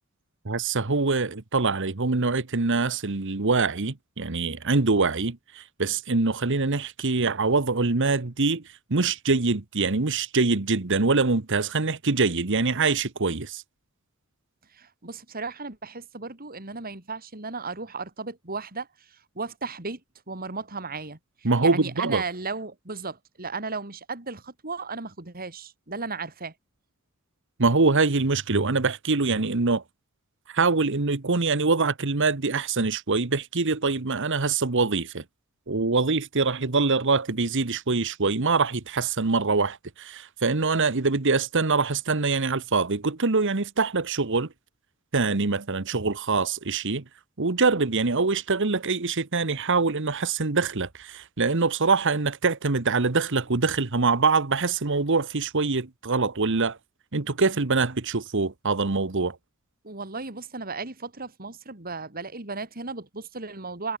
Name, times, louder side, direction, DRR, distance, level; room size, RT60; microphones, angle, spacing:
voice 1, 0.4-8.6 8.9-13.6 21.4-22.2 27.6-29.8 30.5-35.2 35.7-44.5 45.1-47.0 47.4-56.8 57.1-59.4, right 4 dB, 55° right, 1.2 m, -24 dB
voice 2, 14.7-20.0 20.3-21.2 21.6-26.5 59.8-64.0, right 4 dB, 40° right, 3.3 m, -35 dB
head